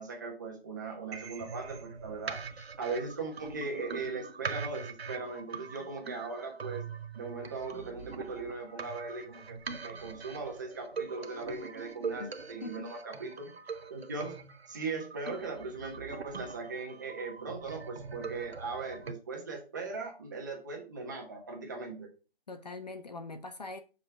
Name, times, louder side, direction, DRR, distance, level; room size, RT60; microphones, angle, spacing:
voice 1, 0.0-6.8 7.1-13.5 13.9-14.4 14.7-22.1, right 4 dB, 20° right, 1.2 m, -39 dB
sound 1, 1.1-19.1, right 5 dB, 80° right, 1.0 m, -43 dB
voice 2, 22.5-23.8, left 3 dB, 40° left, 0.6 m, -42 dB
5.6 x 5.5 x 6.0 m
hypercardioid pair, 170°, 31 cm